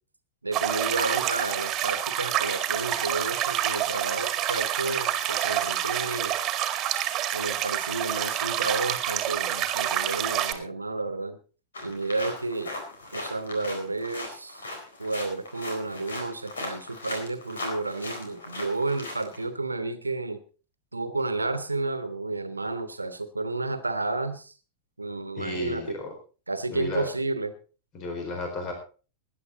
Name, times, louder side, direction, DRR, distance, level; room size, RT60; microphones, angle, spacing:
voice 1, 0.4-6.3 7.3-11.4 11.8-12.7 13.1-14.7 15.0-20.4 20.9-24.5 25.0-25.8 26.5-27.5, right 3 dB, 80° right, 11 dB, 1.3 m, -31 dB
sound 1, 0.5-10.5, right 11 dB, 30° right, 1.9 m, -28 dB
sound 2, 11.7-19.4, left 2 dB, 70° left, 4.1 m, -38 dB
voice 2, 25.4-26.1 26.7-27.1 27.9-28.7, left 2 dB, 35° left, 3 dB, 4.4 m, -33 dB
18.5 x 10.5 x 4.0 m, 0.37 s
figure-of-eight pair, 90°, 0 cm